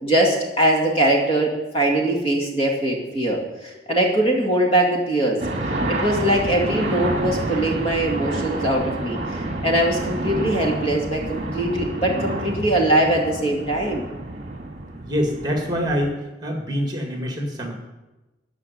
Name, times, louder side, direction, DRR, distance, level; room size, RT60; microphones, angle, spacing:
voice 1, 0.0-5.4 5.9-14.1, right 1 dB, 30° left, -1 dB, 2.2 m, -21 dB
sound 1, 5.4-16.1, right 2 dB, 35° right, 1.9 m, -28 dB
voice 2, 15.0-16.2 16.4-17.8, equal, 20° right, 2 dB, 1.9 m, -25 dB
14.0 x 5.2 x 9.3 m, 1.1 s
head